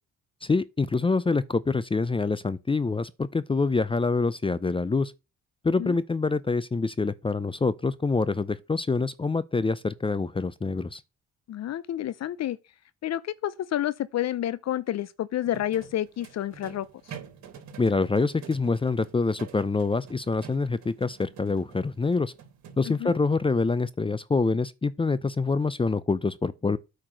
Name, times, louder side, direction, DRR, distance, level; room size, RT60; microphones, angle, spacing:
voice 1, 0.4-5.1 5.6-11.0 17.8-22.3 22.8-26.8, left 3 dB, 20° left, 0.6 m, -26 dB
voice 2, 11.5-12.6 13.0-16.9 22.8-23.2, left 12 dB, 60° left, 0.7 m, -29 dB
sound 1, 15.4-23.2, right 7 dB, 70° right, 3.2 m, -47 dB
8.8 x 4.7 x 6.2 m
cardioid pair, 90°, 30 cm